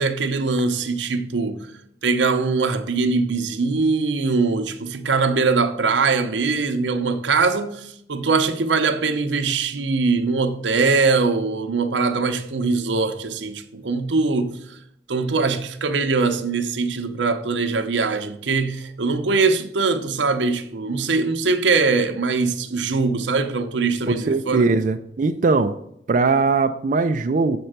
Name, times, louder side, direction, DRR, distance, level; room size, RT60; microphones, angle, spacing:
voice 1, 0.0-1.7 2.0-14.8 15.1-24.7, right 4 dB, 85° right, 0.7 m, -22 dB
voice 2, 24.1-25.8 26.1-27.6, right 3 dB, 45° right, 0.3 m, -20 dB
6.8 x 4.4 x 6.5 m
head